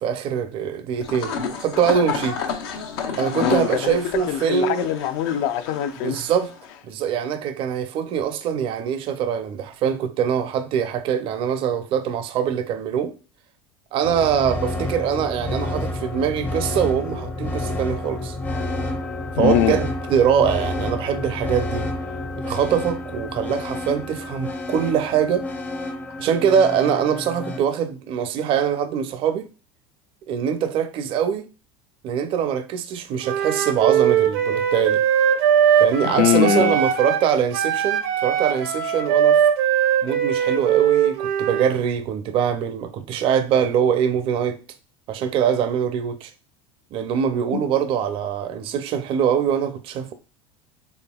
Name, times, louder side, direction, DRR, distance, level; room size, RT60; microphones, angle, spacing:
voice 1, 0.0-2.4 3.2-4.9 6.0-6.5 6.8-13.1 13.9-18.4 19.4-21.9 22.4-25.5 26.2-29.5 30.3-31.5 32.0-35.0 35.8-39.4 40.0-44.6 45.1-46.3 46.9-50.1, right 8 dB, 45° right, 0.4 m, -23 dB
sound 1, 1.0-6.8, left 6 dB, 85° left, 0.8 m, -31 dB
voice 2, 3.4-4.0 4.3-6.2 19.4-19.8 36.0-36.8 47.5-47.6, left 10 dB, 65° left, 0.5 m, -22 dB
sound 2, 14.0-27.6, left 1 dB, 15° left, 0.5 m, -29 dB
Wind instrument woodwind instrument, 33.2-37.3 37.5-41.7, right 9 dB, 85° right, 0.7 m, -20 dB
4.3 x 3.2 x 2.3 m
supercardioid pair, 125°, 13 cm